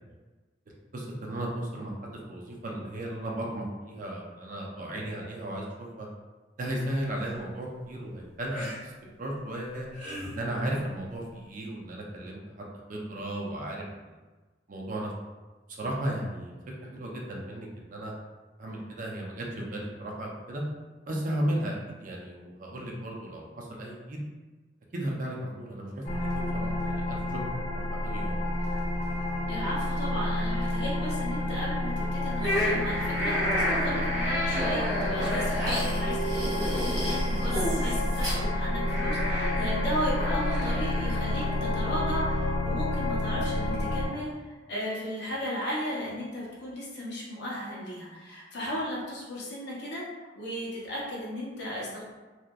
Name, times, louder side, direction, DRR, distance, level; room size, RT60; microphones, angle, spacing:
voice 1, 0.9-6.1 6.6-8.9 9.2-9.9 10.3-13.8 14.7-15.1 15.7-16.5 16.8-18.1 18.6-20.6 21.1-24.2 24.9-27.4 27.7-28.4, right 1 dB, 45° right, -2 dB, 0.5 m, -35 dB
sound 1, 6.9-7.3 8.5-8.8 9.6-10.4 11.6-11.7, equal, 5° left, 1.3 m, -39 dB
sound 2, 26.0-44.1, left 1 dB, 40° left, 0.4 m, -29 dB
voice 2, 29.5-50.0 50.4-52.0, equal, 65° left, -5 dB, 0.8 m, -35 dB
sound 3, 32.4-41.6, equal, 20° right, 0.9 m, -31 dB
2.8 x 2.4 x 2.3 m, 1.3 s
head